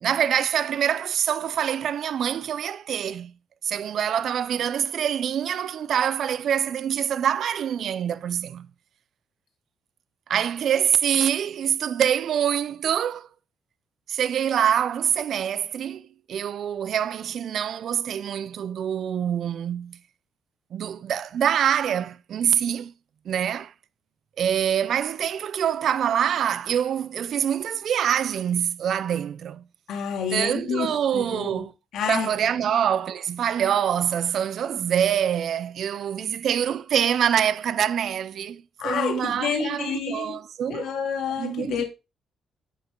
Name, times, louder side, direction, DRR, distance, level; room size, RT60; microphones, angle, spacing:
voice 1, 0.0-3.3 3.6-8.7 10.3-13.3 14.1-20.0 20.7-22.9 23.3-23.7 24.4-29.6 30.3-31.7 32.1-40.9 41.4-41.8, right 9 dB, 65° right, 0.4 m, -25 dB
voice 2, 29.9-31.6 31.9-32.3 38.8-40.4 40.7-41.8, left 7 dB, 80° left, 2.3 m, -29 dB
9.3 x 5.8 x 3.7 m
cardioid pair, 130°, 0 cm